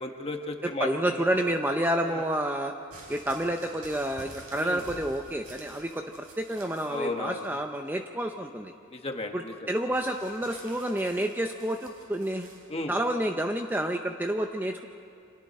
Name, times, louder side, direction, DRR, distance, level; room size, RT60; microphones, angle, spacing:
voice 1, 0.0-1.2 2.0-2.2 4.6-4.8 6.9-7.5 8.9-9.7 12.7-12.9, left 2 dB, 25° left, 4 dB, 1.4 m, -34 dB
voice 2, 0.6-2.7 3.1-6.0 6.4-8.7 9.3-9.4 9.7-12.5 12.9-14.9, right 1 dB, 10° right, 4 dB, 0.6 m, -29 dB
sound 1, 2.9-7.0 7.3-7.9 9.9-12.6 13.5-13.6, right 2 dB, 90° right, 5.6 m, -49 dB
30.0 x 26.0 x 4.3 m, 2.4 s
head